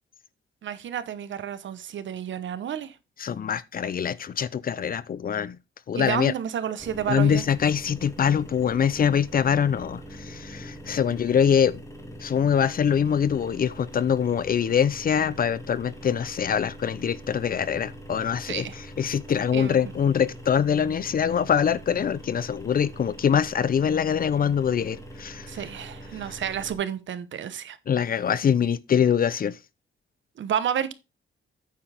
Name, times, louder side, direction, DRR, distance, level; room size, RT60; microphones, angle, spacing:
voice 1, 0.6-2.9 5.9-7.5 18.4-18.8 19.5-19.8 25.5-27.8 30.4-30.9, right 9 dB, 65° right, 1.0 m, -30 dB
voice 2, 3.2-5.6 5.9-6.3 7.1-11.8 12.2-18.7 19.0-25.5 27.9-29.6, left 8 dB, 45° left, 0.6 m, -24 dB
sound 1, 6.8-26.7, equal, 15° left, 2.2 m, -43 dB
9.1 x 7.3 x 3.5 m
cardioid pair, 125°, 21 cm